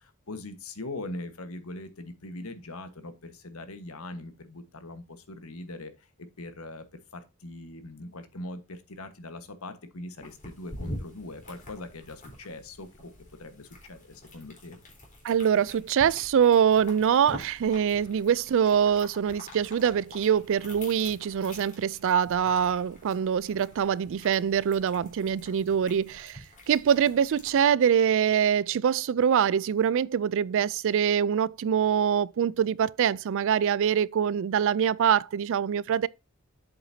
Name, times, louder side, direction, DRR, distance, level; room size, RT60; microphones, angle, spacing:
voice 1, 0.0-6.9 7.1-13.1 13.4-14.8, left 2 dB, 80° left, 1.4 m, -41 dB
sound 1, 10.2-27.7, left 1 dB, 40° left, 3.7 m, -46 dB
voice 2, 15.2-36.1, right 8 dB, 65° right, 0.3 m, -24 dB
7.9 x 7.9 x 2.7 m
head